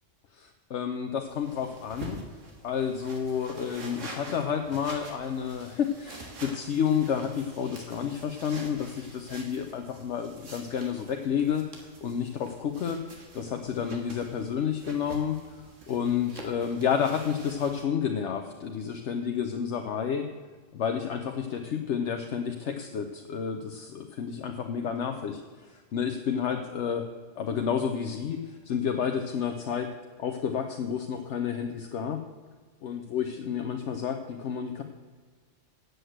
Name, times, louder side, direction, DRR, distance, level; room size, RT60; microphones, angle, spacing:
voice 1, 0.3-2.2 2.6-11.6 12.0-15.4 15.9-20.2 20.7-27.1 27.4-29.9 30.2-32.2 32.8-34.8, left 7 dB, 65° left, 5 dB, 1.0 m, -30 dB
sound 1, 1.3-17.8, right 2 dB, 75° right, 1.9 m, -46 dB
8.0 x 7.9 x 7.8 m, 1.5 s
omnidirectional pair, 1.3 m